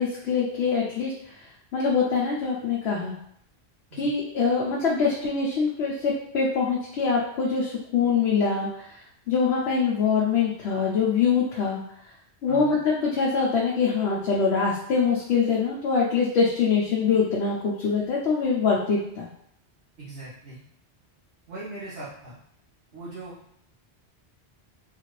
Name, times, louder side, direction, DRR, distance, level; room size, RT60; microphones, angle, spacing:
voice 1, 0.0-3.1 4.0-11.8 12.4-19.3, left 5 dB, 75° left, -3 dB, 0.9 m, -24 dB
voice 2, 12.5-12.8 20.0-20.6 21.5-22.4 22.9-23.3, right 2 dB, 75° right, -9 dB, 1.2 m, -39 dB
3.7 x 2.4 x 3.1 m, 0.71 s
omnidirectional pair, 1.1 m